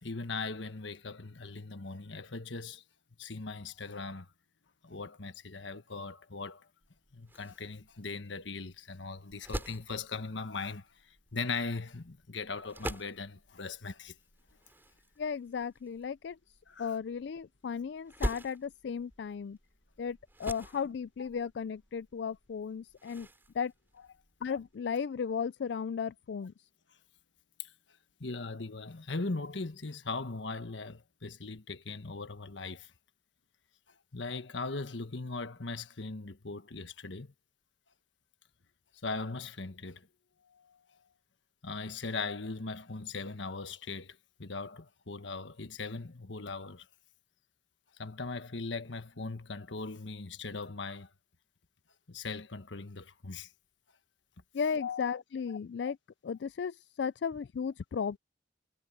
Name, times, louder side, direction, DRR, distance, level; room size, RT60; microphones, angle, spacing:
voice 1, 0.0-2.8 3.2-4.3 4.8-6.6 7.1-10.9 11.3-14.1 16.7-16.9 27.6-27.7 28.2-32.9 34.1-37.3 39.0-40.1 40.5-40.8 41.6-46.8 48.0-51.1 52.1-53.5 54.7-55.2, left 3 dB, 90° left, 1.4 m, -39 dB
sound 1, 6.8-24.8, equal, 10° right, 6.2 m, -45 dB
voice 2, 15.2-16.4 16.8-19.6 20.0-23.3 23.5-23.7 24.4-26.5 54.5-56.0 56.2-58.2, left 6 dB, 70° left, 0.4 m, -35 dB
head